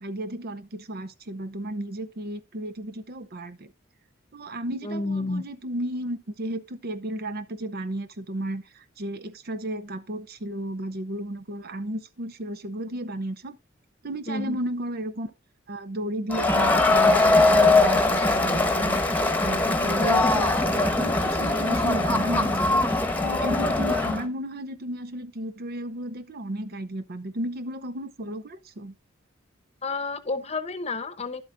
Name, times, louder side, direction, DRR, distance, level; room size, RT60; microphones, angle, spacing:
voice 1, 0.0-3.7 4.3-13.6 14.0-15.3 15.7-22.8 23.2-28.9, right 1 dB, 50° right, 0.7 m, -33 dB
voice 2, 4.8-5.4 14.3-14.6 29.8-31.4, left 3 dB, 35° left, 0.9 m, -30 dB
Crowd, 16.3-24.2, left 2 dB, 10° left, 1.1 m, -21 dB
11.5 x 7.9 x 2.6 m
head